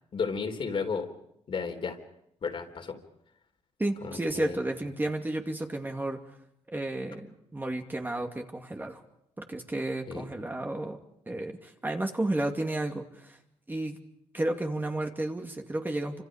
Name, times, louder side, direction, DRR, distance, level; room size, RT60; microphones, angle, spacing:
voice 1, 0.1-1.1 1.5-2.0 2.4-3.0 4.0-4.6 10.1-10.3, left 5 dB, 50° left, 4 dB, 3.7 m, -33 dB
voice 2, 3.8-6.2 6.7-9.0 9.4-11.0 11.3-13.4 13.7-14.0 14.3-16.2, right 1 dB, 15° right, 3 dB, 2.5 m, -32 dB
28.5 x 26.5 x 5.0 m, 0.76 s
cardioid pair, 90°, 12 cm